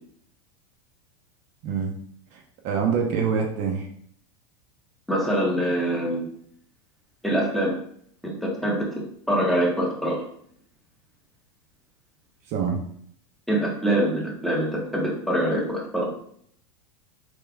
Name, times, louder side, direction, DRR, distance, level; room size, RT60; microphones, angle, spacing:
voice 1, 2.3-3.9 12.5-12.8, right 6 dB, 50° right, 2 dB, 0.8 m, -25 dB
voice 2, 5.1-6.2 7.2-7.8 8.2-8.9 9.3-10.2 13.5-16.0, right 1 dB, ahead, -3 dB, 1.2 m, -24 dB
4.7 x 3.4 x 2.3 m, 0.63 s
hypercardioid pair, 115°, 16 cm